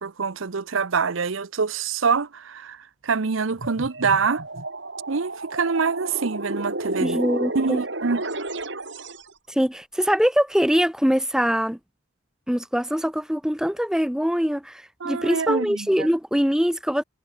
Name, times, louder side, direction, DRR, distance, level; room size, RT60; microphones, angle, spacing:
voice 1, 0.0-4.4 5.1-7.2 7.5-8.2 15.0-16.1, right 5 dB, 85° right, 0.8 m, -25 dB
sound 1, 3.5-9.3, right 2 dB, 65° right, 3.7 m, -31 dB
voice 2, 7.0-7.8 9.5-11.8 12.5-17.0, equal, 5° right, 0.8 m, -23 dB
head